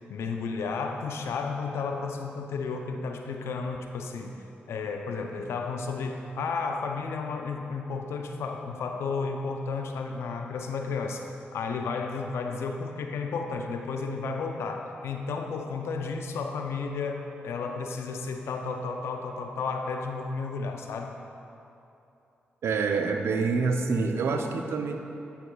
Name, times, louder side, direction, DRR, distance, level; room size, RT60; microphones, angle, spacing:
voice 1, 0.1-4.3 4.7-11.2 11.5-21.1, left 4 dB, 85° left, 4 dB, 0.5 m, -32 dB
voice 2, 22.6-25.0, right 4 dB, 75° right, 5 dB, 0.5 m, -26 dB
8.5 x 7.9 x 2.3 m, 2.8 s
supercardioid pair, 45°, 4 cm